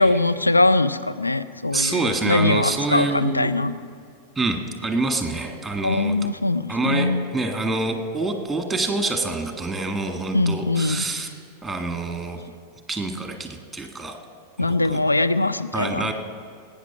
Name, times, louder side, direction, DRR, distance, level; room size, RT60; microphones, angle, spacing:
voice 1, 0.0-3.8 5.8-7.3 10.3-11.0 14.6-16.1, left 2 dB, 80° left, 12 dB, 0.5 m, -21 dB
voice 2, 1.7-3.5 4.4-6.3 6.7-11.3 11.6-12.4 12.9-14.2 14.7-15.0 15.7-16.1, right 3 dB, 5° right, 5 dB, 1.8 m, -26 dB
19.0 x 9.0 x 5.8 m, 2.2 s
figure-of-eight pair, 90°, 0 cm